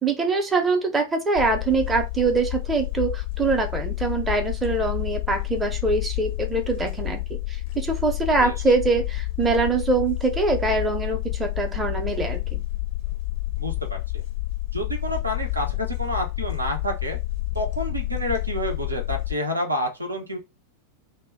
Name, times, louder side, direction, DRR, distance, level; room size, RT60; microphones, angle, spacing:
voice 1, 0.0-7.2 7.5-12.6, right 3 dB, 15° right, 0.6 m, -24 dB
sound 1, 1.4-19.3, left 18 dB, 45° left, 0.4 m, -29 dB
voice 2, 13.6-14.2 14.7-17.2 17.5-20.4, equal, 80° right, 0.6 m, -29 dB
2.1 x 2.1 x 3.4 m
figure-of-eight pair, 90°, 0 cm